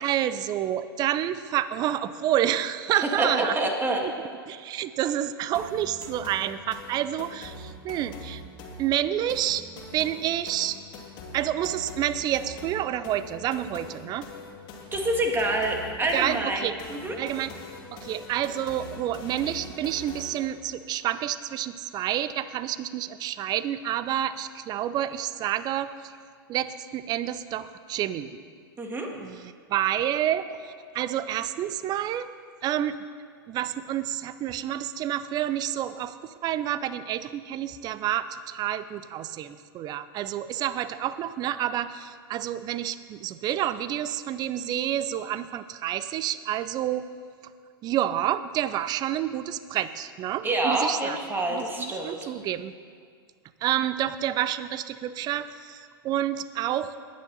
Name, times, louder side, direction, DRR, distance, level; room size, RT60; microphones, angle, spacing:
voice 1, 0.0-3.6 4.0-4.1 4.5-8.4 8.8-9.6 9.9-10.8 11.3-14.3 16.1-16.7 17.2-17.5 17.9-26.1 26.5-28.4 29.2-32.3 32.6-32.9 33.5-47.1 47.8-51.2 51.5-52.7 53.6-57.0, right 11 dB, 35° right, 14 dB, 0.6 m, -29 dB
voice 2, 3.2-4.0 14.9-17.2 28.8-29.1 50.4-52.3, right 2 dB, 15° right, 2 dB, 2.1 m, -27 dB
sound 1, 5.5-20.6, left 2 dB, 40° left, 2.5 m, -43 dB
21.0 x 9.4 x 4.1 m, 2.1 s
figure-of-eight pair, 95°, 13 cm